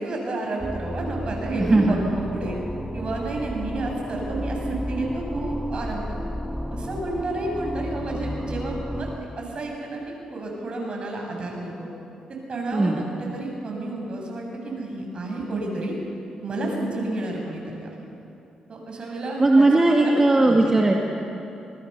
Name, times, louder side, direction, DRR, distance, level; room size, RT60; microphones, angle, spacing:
voice 1, 0.0-2.0 2.3-2.6 2.9-6.2 6.7-9.1 9.4-11.9 12.3-16.0 16.4-18.1 18.7-19.7 20.0-20.7, right 2 dB, 50° right, 0 dB, 7.5 m, -31 dB
sound 1, 0.6-9.2, equal, 5° left, 2.2 m, -32 dB
voice 2, 1.6-2.0 12.7-13.0 19.4-21.0, right 2 dB, 20° right, 0 dB, 2.1 m, -18 dB
26.5 x 20.5 x 6.9 m, 2.8 s
cardioid pair, 70°, 2 cm